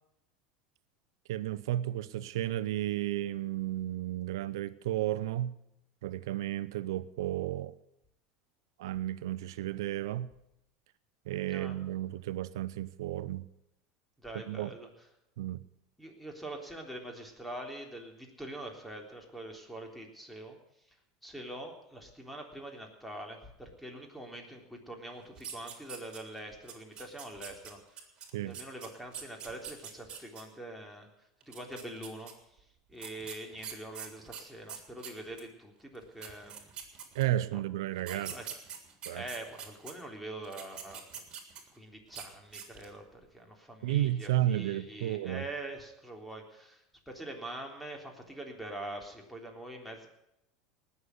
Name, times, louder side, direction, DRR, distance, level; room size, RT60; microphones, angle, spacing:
voice 1, 1.3-5.6 6.0-7.7 8.8-10.3 11.3-13.5 14.5-14.7 15.4-15.6 28.3-28.6 37.1-38.4 39.1-39.2 43.8-45.5, right 13 dB, 75° right, 0.7 m, -33 dB
voice 2, 14.2-14.9 16.0-20.6 21.2-27.8 28.4-31.1 31.5-32.3 32.9-36.7 37.5-37.6 38.1-38.5 39.1-41.2 41.7-50.1, right 1 dB, ahead, 3.6 m, -44 dB
sound 1, 25.4-26.4 26.7-30.4 31.4-32.3 33.0-35.5 35.9-36.0 36.2-37.4 38.0-39.9 40.4-41.8 42.1-42.3 42.5-43.0, right 8 dB, 40° right, 3.4 m, -44 dB
19.0 x 7.1 x 9.5 m
hypercardioid pair, 95°, 2 cm